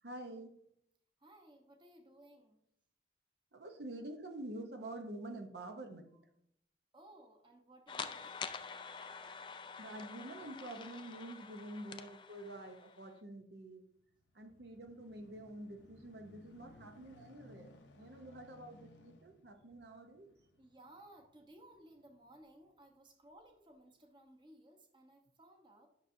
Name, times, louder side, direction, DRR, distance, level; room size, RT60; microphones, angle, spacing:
voice 1, 0.0-0.5 3.5-6.1 9.8-13.8 14.3-20.3, right 1 dB, 65° right, 5 dB, 0.8 m, -48 dB
voice 2, 1.2-2.6 6.9-8.4 20.6-25.9, right 1 dB, 25° right, 3 dB, 1.0 m, -60 dB
sound 1, 7.9-13.1, left 6 dB, 25° left, 0.3 m, -47 dB
sound 2, 13.9-22.7 23.3-23.4, left 2 dB, 80° left, 0.8 m, -62 dB
11.0 x 6.2 x 2.7 m, 0.74 s
head